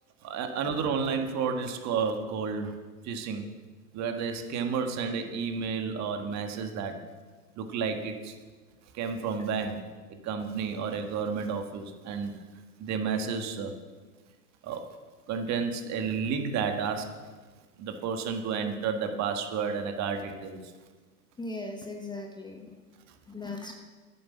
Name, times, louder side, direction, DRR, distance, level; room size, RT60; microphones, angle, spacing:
voice 1, 0.2-2.8 3.0-3.5 3.9-7.0 7.6-8.3 8.9-9.8 10.2-12.3 12.8-13.7 14.6-14.8 15.3-17.1 17.8-20.6, right 6 dB, 35° right, 6 dB, 1.6 m, -31 dB
voice 2, 21.4-22.7 23.3-23.7, left 2 dB, 10° left, 4 dB, 0.9 m, -38 dB
9.3 x 8.6 x 7.1 m, 1.4 s
hypercardioid pair, 100°, 45 cm